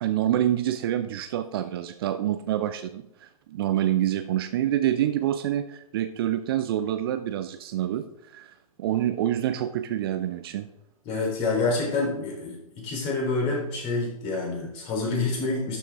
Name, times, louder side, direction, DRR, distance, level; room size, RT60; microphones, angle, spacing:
voice 1, 0.0-8.1 8.3-10.7, right 12 dB, 40° right, 10 dB, 0.6 m, -27 dB
voice 2, 11.1-15.8, left 3 dB, 30° left, -1 dB, 3.7 m, -27 dB
12.0 x 6.9 x 3.6 m, 0.81 s
figure-of-eight pair, 115°, 18 cm